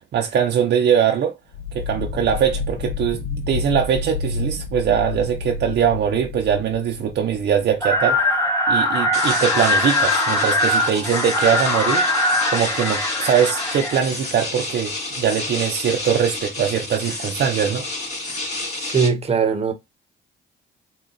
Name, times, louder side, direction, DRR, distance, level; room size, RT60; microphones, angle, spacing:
voice 1, 0.1-1.3 1.7-12.2 12.5-17.9, right 8 dB, 60° right, 0.6 m, -22 dB
sound 1, 1.5-8.3, left 4 dB, 80° left, 0.5 m, -30 dB
sound 2, 7.8-14.0, left 1 dB, 15° left, 1.3 m, -21 dB
sound 3, 9.1-19.1, left 2 dB, 35° left, 1.9 m, -30 dB
voice 2, 18.8-19.7, right 6 dB, 30° right, 0.9 m, -20 dB
3.6 x 2.3 x 3.9 m
cardioid pair, 90°, 20 cm